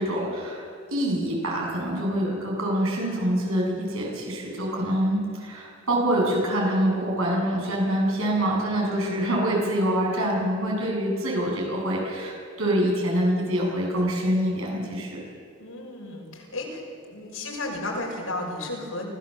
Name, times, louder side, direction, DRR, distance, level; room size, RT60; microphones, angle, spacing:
voice 1, 0.0-15.2, right 1 dB, 80° right, -2 dB, 7.6 m, -25 dB
voice 2, 15.6-16.8 17.1-19.1, left 2 dB, 85° left, -1 dB, 5.9 m, -33 dB
24.5 x 17.0 x 7.7 m, 2.3 s
head